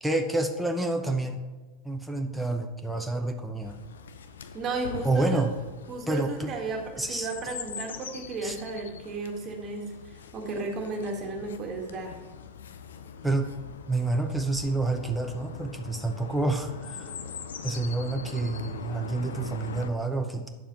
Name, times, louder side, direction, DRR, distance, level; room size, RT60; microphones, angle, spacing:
voice 1, 0.0-1.4 1.8-3.8 5.0-5.5 6.1-6.5 7.0-7.3 8.4-8.6 13.2-13.5 13.9-17.1 17.6-20.5, right 2 dB, 5° right, 4 dB, 0.7 m, -28 dB
Chirp tweet, 3.6-19.9, left 6 dB, 65° left, 0.6 m, -42 dB
voice 2, 4.5-5.4 5.9-9.9 10.3-12.2, right 3 dB, 30° right, 1 dB, 1.8 m, -34 dB
8.9 x 7.0 x 4.3 m, 1.3 s
figure-of-eight pair, 90°, 0 cm